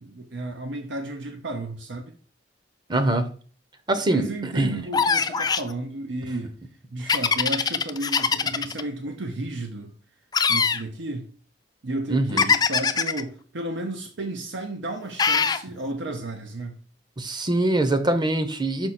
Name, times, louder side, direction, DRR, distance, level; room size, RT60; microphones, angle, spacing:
voice 1, 0.0-2.1 4.1-6.6 6.9-9.9 10.5-11.3 11.8-16.8, right 1 dB, 85° right, 0.8 m, -33 dB
voice 2, 2.9-3.3 3.9-4.8 12.1-12.5 17.2-18.9, right 2 dB, 25° right, 0.7 m, -23 dB
sound 1, 4.9-5.7 7.1-8.8 10.3-10.8 12.4-13.2 15.2-15.6, left 5 dB, 20° left, 0.4 m, -22 dB
6.2 x 4.9 x 4.2 m
head